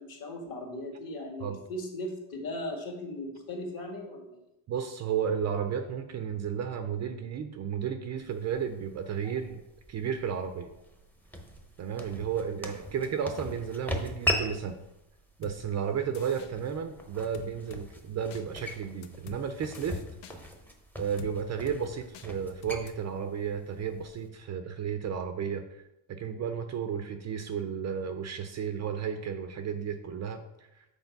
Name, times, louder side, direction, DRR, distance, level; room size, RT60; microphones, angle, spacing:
voice 1, 0.0-4.4 9.2-9.3, left 1 dB, 45° left, 2 dB, 1.9 m, -38 dB
voice 2, 4.7-9.6 9.9-10.7 11.8-14.8 15.4-20.0 21.0-25.8 26.1-30.4 30.8-30.9, right 7 dB, 35° right, 7 dB, 0.5 m, -33 dB
sound 1, 8.2-24.3, equal, 5° left, 0.7 m, -40 dB
sound 2, 15.4-15.6 16.1-16.5 17.3-17.8 18.3-18.4 19.0-19.4 19.7-20.4 21.2-21.3 21.7-21.8 22.1-22.3 22.6-22.9, left 7 dB, 70° left, 1.0 m, -45 dB
8.1 x 4.2 x 5.9 m, 0.90 s
cardioid pair, 150°, 49 cm